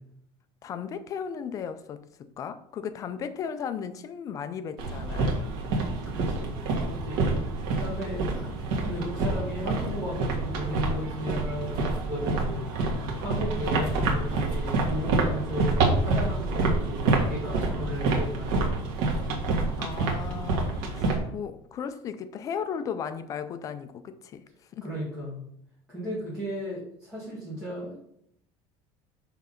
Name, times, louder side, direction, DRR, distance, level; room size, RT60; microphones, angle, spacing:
voice 1, 0.6-5.5 19.8-24.4 24.7-24.9, left 7 dB, 30° left, 11 dB, 0.3 m, -36 dB
sound 1, 4.8-21.2, right 3 dB, 85° right, 1.6 m, -27 dB
voice 2, 6.0-7.4 7.7-8.5 8.8-18.7 24.8-25.4 25.9-28.0, equal, 10° right, -9 dB, 2.2 m, -35 dB
5.8 x 3.7 x 5.6 m, 0.70 s
cardioid pair, 170°, 12 cm